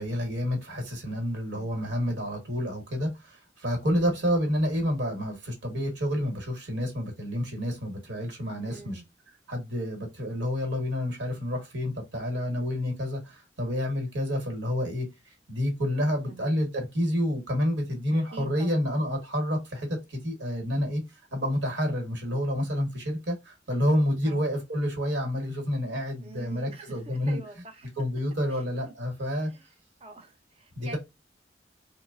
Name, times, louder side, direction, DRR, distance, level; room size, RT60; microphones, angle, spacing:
voice 1, 0.0-9.0 9.5-21.0 21.3-27.4 28.0-29.5 30.8-31.0, equal, 70° right, 1.2 m, -29 dB
voice 2, 8.6-9.1 16.3-16.6 18.3-18.9 24.2-24.5 26.2-27.9 28.5-28.6 29.4-29.7 30.0-31.0, right 3 dB, 35° right, 0.6 m, -45 dB
3.0 x 2.1 x 2.3 m
head